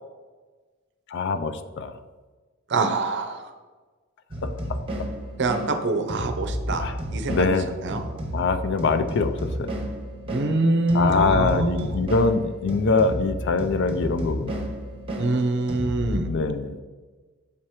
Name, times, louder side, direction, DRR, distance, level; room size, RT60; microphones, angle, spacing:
voice 1, 1.1-1.9 4.4-4.5 5.0-5.1 6.8-6.9 7.3-7.7 8.3-9.3 9.6-9.7 10.9-14.6 16.2-16.8, left 4 dB, 55° left, 10 dB, 0.4 m, -23 dB
voice 2, 2.7-3.4 5.4-6.9 7.1-8.0 10.3-12.0 15.2-16.3, right 2 dB, 55° right, 7 dB, 0.6 m, -25 dB
sound 1, 4.3-16.2, equal, 25° right, 0.9 m, -32 dB
7.1 x 2.9 x 4.7 m, 1.3 s
head